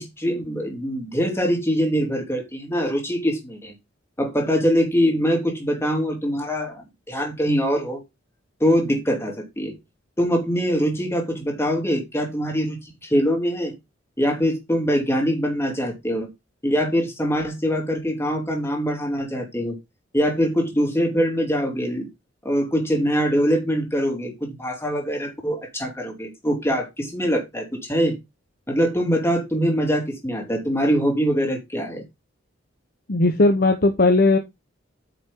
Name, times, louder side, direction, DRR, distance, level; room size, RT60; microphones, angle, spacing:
voice 1, 0.0-3.7 4.2-8.0 8.6-9.8 10.2-13.8 14.2-16.3 16.6-19.8 20.1-22.1 22.4-28.2 28.7-32.0, equal, 15° left, 3.1 m, -23 dB
voice 2, 33.1-34.4, left 2 dB, 50° left, 1.0 m, -17 dB
9.2 x 6.0 x 3.7 m
head